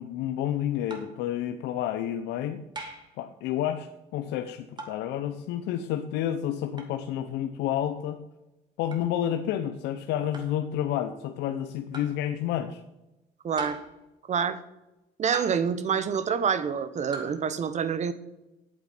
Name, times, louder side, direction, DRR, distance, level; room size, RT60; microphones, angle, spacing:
voice 1, 0.0-2.6 3.2-8.2 8.8-12.8, left 11 dB, 85° left, 8 dB, 0.8 m, -30 dB
sound 1, 0.9-1.2 2.7-3.1 4.8-5.1 6.8-7.0 8.9-9.1 10.3-10.6 11.9-12.2 13.6-14.0 15.3-15.8 17.1-17.4, right 3 dB, 25° right, 2.4 m, -40 dB
voice 2, 13.4-13.8 14.3-14.6 15.2-18.1, right 7 dB, 45° right, 13 dB, 1.1 m, -27 dB
8.9 x 8.0 x 8.4 m, 0.97 s
cardioid pair, 110°, 17 cm